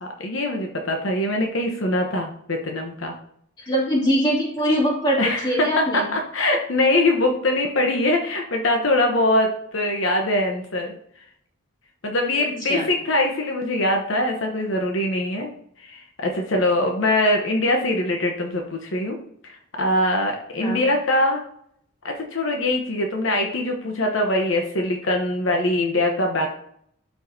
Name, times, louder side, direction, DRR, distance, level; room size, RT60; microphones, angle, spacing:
voice 1, 0.0-3.1 3.6-3.7 5.2-10.9 12.0-15.5 15.8-19.2 19.4-21.4 22.0-26.5, left 1 dB, 65° left, 2 dB, 1.0 m, -23 dB
voice 2, 3.7-6.1 12.7-12.9 20.6-20.8, equal, 20° left, -5 dB, 2.7 m, -22 dB
12.0 x 4.7 x 2.8 m, 0.68 s
head